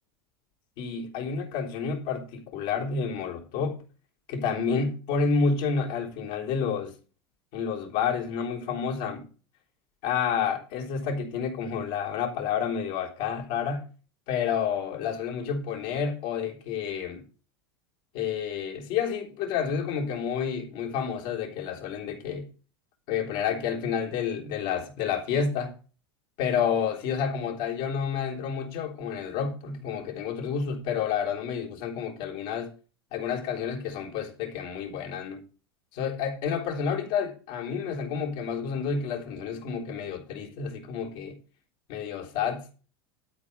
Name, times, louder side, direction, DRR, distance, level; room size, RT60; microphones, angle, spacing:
voice 1, 0.8-3.8 4.3-6.9 7.5-9.3 10.0-13.9 14.3-17.2 18.1-22.5 23.1-25.7 26.4-32.7 33.1-35.4 35.9-41.4 41.9-42.7, left 6 dB, 60° left, 3.7 m, -29 dB
12.5 x 5.0 x 6.8 m
hypercardioid pair, 90°, 13 cm